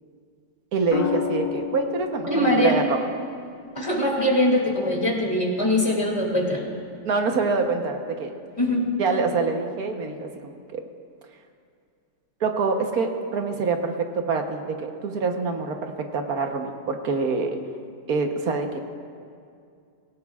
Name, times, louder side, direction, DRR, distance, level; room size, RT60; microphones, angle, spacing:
voice 1, 0.7-3.1 7.0-8.3 9.0-10.8 12.4-17.6 18.1-18.8, right 4 dB, 55° right, 4 dB, 1.4 m, -26 dB
sound 1, 0.9-5.0 6.7-7.1, left 6 dB, 60° left, 1.4 m, -32 dB
voice 2, 2.3-2.8 3.7-6.7 8.6-8.9, left 1 dB, 15° left, -2 dB, 2.5 m, -22 dB
25.0 x 17.5 x 2.4 m, 2.3 s
omnidirectional pair, 2.0 m